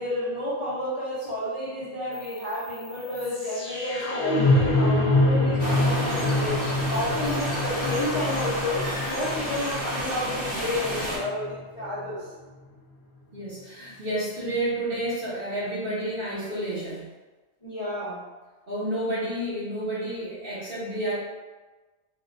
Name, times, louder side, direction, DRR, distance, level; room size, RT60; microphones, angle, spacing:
voice 1, 0.0-12.2 17.6-18.2, left 1 dB, 35° left, -11 dB, 0.6 m, -31 dB
sound 1, 2.1-12.2, left 2 dB, 70° left, 0.9 m, -26 dB
sound 2, 5.6-11.2, equal, 10° right, 0.8 m, -31 dB
voice 2, 13.3-17.1 18.7-21.1, right 1 dB, 55° right, -9 dB, 1.2 m, -30 dB
3.5 x 2.2 x 2.5 m, 1.3 s
omnidirectional pair, 1.2 m